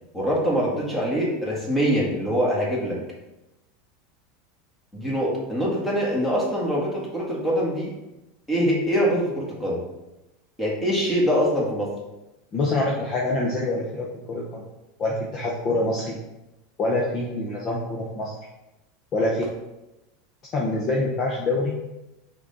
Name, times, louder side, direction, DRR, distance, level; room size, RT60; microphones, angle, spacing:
voice 1, 0.1-3.0 4.9-7.9 8.5-9.8 10.6-11.9, equal, 10° left, -4 dB, 1.6 m, -24 dB
voice 2, 12.5-14.6 15.0-16.2 16.8-18.4 19.1-19.4 20.5-21.8, left 2 dB, 30° left, -3 dB, 0.8 m, -25 dB
6.2 x 3.8 x 4.1 m, 0.97 s
supercardioid pair, 160°, 0 cm